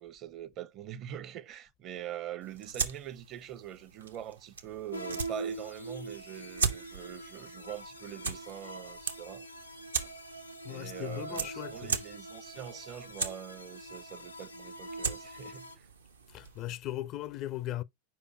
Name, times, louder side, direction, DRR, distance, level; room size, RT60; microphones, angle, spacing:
voice 1, 0.0-9.5 10.7-15.9, right 10 dB, 35° right, 0.6 m, -44 dB
sound 1, 2.4-16.8, right 5 dB, 75° right, 0.8 m, -39 dB
sound 2, 4.9-15.8, right 2 dB, 85° left, 0.7 m, -44 dB
voice 2, 10.6-12.0 16.3-17.8, left 14 dB, 35° left, 0.4 m, -38 dB
5.0 x 4.6 x 4.8 m
figure-of-eight pair, 90°, 0 cm